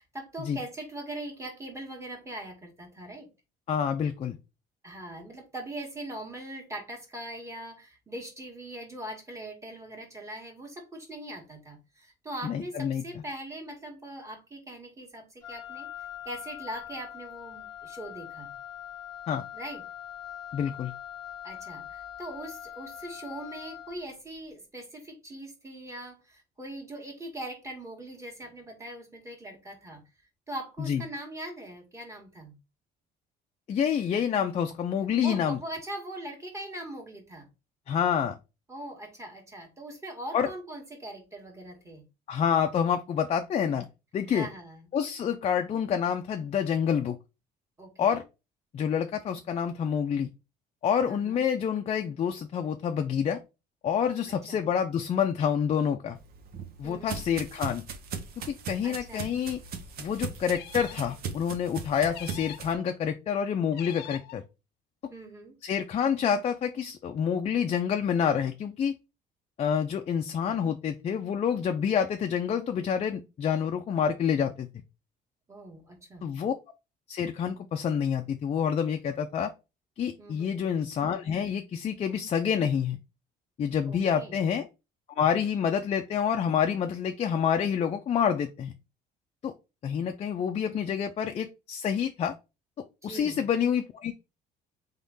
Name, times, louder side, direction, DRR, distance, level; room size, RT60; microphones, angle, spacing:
voice 1, 0.0-3.3 4.8-15.9 16.3-18.5 19.5-19.8 21.4-30.0 30.5-32.6 35.2-37.5 38.7-42.0 44.3-44.9 47.8-48.2 51.1-51.4 54.3-54.6 56.8-57.2 58.8-59.3 65.1-65.6 75.5-76.3 80.2-80.6 83.9-84.4 93.0-93.4, right 1 dB, 15° right, 1.8 m, -41 dB
voice 2, 3.7-4.4 12.4-13.0 19.3-19.4 20.5-20.9 30.8-31.0 33.7-35.6 37.9-38.3 40.3-40.5 42.3-43.9 44.1-44.5 44.9-47.2 48.0-48.2 48.7-50.3 50.8-53.4 53.8-56.2 56.8-57.8 58.5-59.6 60.0-64.4 65.6-69.0 69.6-74.7 76.2-76.5 77.1-79.5 80.0-83.0 83.6-84.7 85.2-88.7 89.4-89.5 89.8-92.3 93.0-94.1, left 8 dB, 40° left, 0.5 m, -28 dB
Wind instrument woodwind instrument, 15.4-24.1, left 10 dB, 20° left, 1.0 m, -42 dB
sound 1, 56.2-62.7, right 6 dB, 65° right, 0.8 m, -39 dB
sound 2, 60.5-61.2 62.1-62.8 63.7-64.4, left 12 dB, 80° left, 0.7 m, -44 dB
3.6 x 3.6 x 3.9 m
cardioid pair, 110°, 17 cm